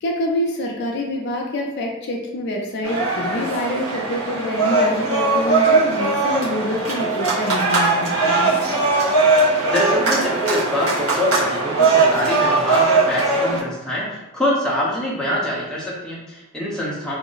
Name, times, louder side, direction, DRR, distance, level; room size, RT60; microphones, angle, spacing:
voice 1, 0.0-8.5, left 1 dB, 50° left, 1 dB, 0.3 m, -26 dB
sound 1, 2.8-13.6, right 3 dB, 80° right, 1.0 m, -19 dB
voice 2, 9.7-17.1, left 1 dB, 5° left, -6 dB, 0.5 m, -24 dB
2.4 x 2.0 x 3.8 m, 1.0 s
head